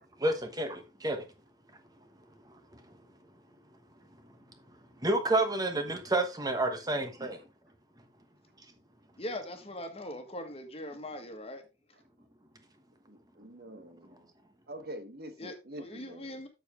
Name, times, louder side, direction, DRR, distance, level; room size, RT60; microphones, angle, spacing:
voice 1, 0.2-1.2 5.0-7.4, right 2 dB, 20° right, 1.1 m, -29 dB
voice 2, 9.2-11.6 15.4-16.5, left 1 dB, 30° left, 1.6 m, -41 dB
voice 3, 13.1-14.2 14.7-16.4, equal, 55° right, 1.2 m, -45 dB
7.9 x 6.9 x 3.7 m
head